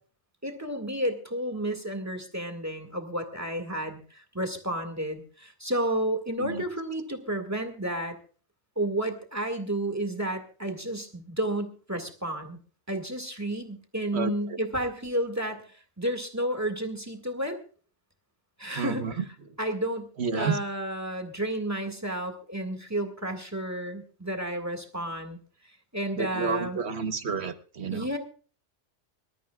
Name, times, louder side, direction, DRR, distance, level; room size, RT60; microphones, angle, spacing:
voice 1, 0.4-8.2 8.8-12.6 12.9-17.6 18.6-19.1 19.6-25.4 25.9-26.8 27.9-28.2, right 1 dB, 15° right, 5 dB, 2.0 m, -31 dB
voice 2, 14.1-14.6 18.7-19.2 20.2-20.6 26.2-28.1, right 5 dB, 65° right, 9 dB, 1.4 m, -30 dB
25.5 x 13.0 x 2.4 m, 0.39 s
omnidirectional pair, 1.2 m